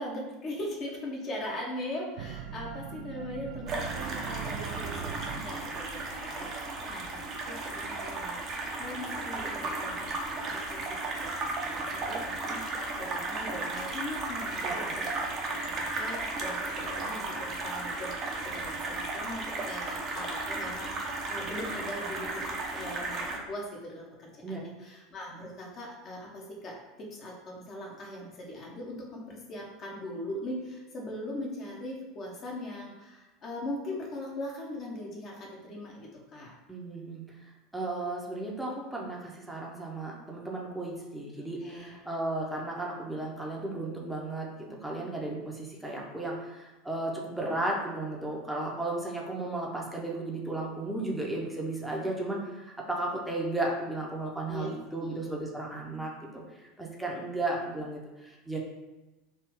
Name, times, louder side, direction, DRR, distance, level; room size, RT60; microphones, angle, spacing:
voice 1, 0.0-10.8 11.2-22.4 22.7-36.5 41.6-42.0 54.5-54.7 55.0-55.3, left 1 dB, 35° left, -2 dB, 1.1 m, -40 dB
sound 1, 2.2-7.6 8.8-9.8 10.2-10.3 12.8-12.9 13.3-16.4, right 8 dB, 55° right, 0.3 m, -43 dB
sound 2, 3.7-23.4, right 2 dB, 35° right, 0.8 m, -35 dB
voice 2, 14.6-15.0 24.4-24.6 36.7-37.2 37.7-58.6, right 2 dB, 5° right, -2 dB, 0.8 m, -34 dB
3.3 x 2.9 x 4.7 m, 1.1 s
figure-of-eight pair, 75°, 0 cm